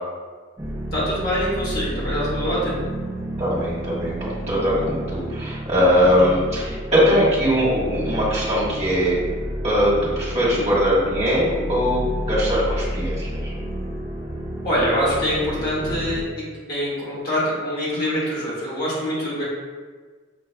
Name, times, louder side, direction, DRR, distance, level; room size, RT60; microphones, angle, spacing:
sound 1, 0.6-16.2, equal, 15° right, 0.4 m, -30 dB
voice 1, 0.9-2.8 10.5-10.7 14.6-19.4, equal, 50° left, -9 dB, 1.4 m, -24 dB
voice 2, 3.4-9.2 9.6-13.5, equal, 35° right, -8 dB, 1.3 m, -21 dB
6.7 x 2.2 x 2.2 m, 1.5 s
head